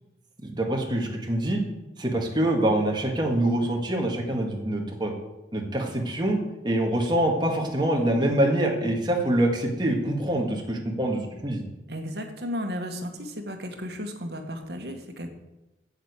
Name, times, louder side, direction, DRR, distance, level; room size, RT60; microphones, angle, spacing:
voice 1, 0.4-1.6 2.0-5.1 5.5-11.6, right 1 dB, 25° right, 1 dB, 1.9 m, -25 dB
voice 2, 11.9-15.3, equal, 65° right, 4 dB, 1.7 m, -34 dB
8.3 x 8.1 x 8.2 m, 1.0 s
head